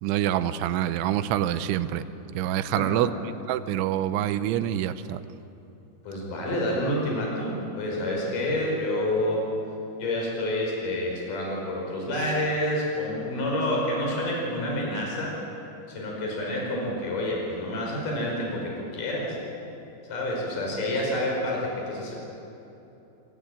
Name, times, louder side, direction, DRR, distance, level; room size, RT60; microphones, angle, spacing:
voice 1, 0.0-2.0 2.3-3.1 3.5-5.2, right 12 dB, 85° right, 12 dB, 3.2 m, -26 dB
voice 2, 2.7-3.1 6.0-9.4 10.0-15.3 15.9-19.4 20.1-22.1, left 1 dB, 45° left, -2 dB, 6.4 m, -28 dB
26.5 x 17.0 x 8.9 m, 2.9 s
omnidirectional pair, 5.4 m